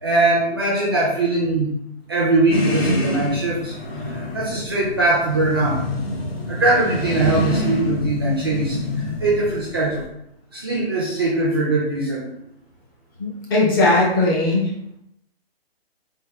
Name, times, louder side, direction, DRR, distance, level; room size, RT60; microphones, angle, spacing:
voice 1, 0.0-1.7 2.1-5.8 6.5-10.1 10.5-12.3, right 2 dB, 25° right, -5 dB, 0.4 m, -21 dB
sound 1, 2.5-10.1, left 2 dB, 70° left, 1.0 m, -27 dB
voice 2, 13.2-14.7, left 2 dB, 20° left, -3 dB, 0.6 m, -18 dB
3.5 x 2.2 x 3.2 m, 0.77 s
hypercardioid pair, 145°, 32 cm